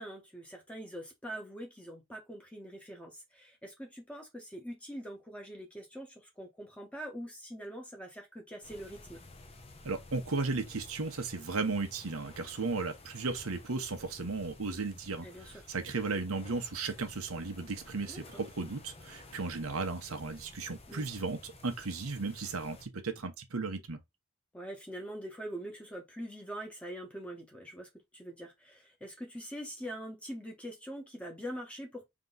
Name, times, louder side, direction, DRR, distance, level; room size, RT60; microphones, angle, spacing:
voice 1, 0.0-9.2 15.2-15.7 18.1-18.2 20.9-21.0 24.5-32.1, equal, 5° left, 1.2 m, -44 dB
sound 1, 8.6-22.9, left 2 dB, 25° left, 0.7 m, -53 dB
voice 2, 9.8-24.0, right 3 dB, 80° right, 1.0 m, -35 dB
3.6 x 3.0 x 3.9 m
head